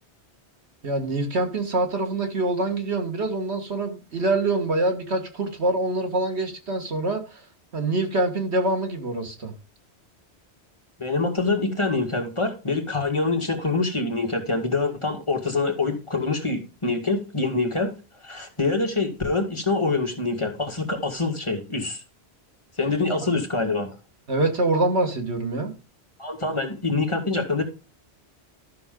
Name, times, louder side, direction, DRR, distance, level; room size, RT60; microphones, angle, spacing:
voice 1, 0.8-7.4 7.7-9.5 24.3-25.7, right 2 dB, 75° right, 2.0 m, -25 dB
voice 2, 11.0-17.9 18.2-22.0 22.8-23.9 26.2-27.6, left 3 dB, 25° left, 1.8 m, -25 dB
12.5 x 6.1 x 3.8 m
omnidirectional pair, 1.1 m